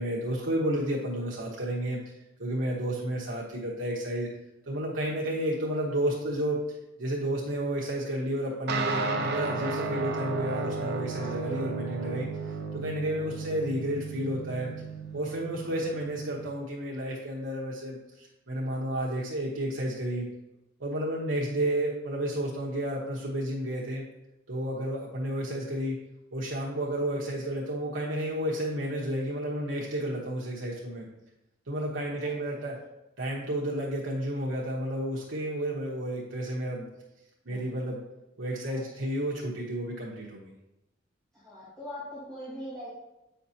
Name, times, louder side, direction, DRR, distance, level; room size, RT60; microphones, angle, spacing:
voice 1, 0.0-2.0 2.4-4.3 4.7-6.6 7.0-14.7 15.1-20.3 20.8-24.0 24.5-26.0 26.3-31.1 31.7-32.8 33.2-36.8 37.4-38.0 38.4-40.5, right 1 dB, 85° right, -4 dB, 1.1 m, -31 dB
sound 1, 8.7-16.5, right 4 dB, 55° right, 0.7 m, -34 dB
voice 2, 11.2-11.6 13.4-13.6 15.6-16.0 32.2-32.6 37.5-37.9 38.7-39.1 41.3-42.9, left 1 dB, 5° left, -13 dB, 2.2 m, -44 dB
8.6 x 5.7 x 2.8 m, 0.93 s
head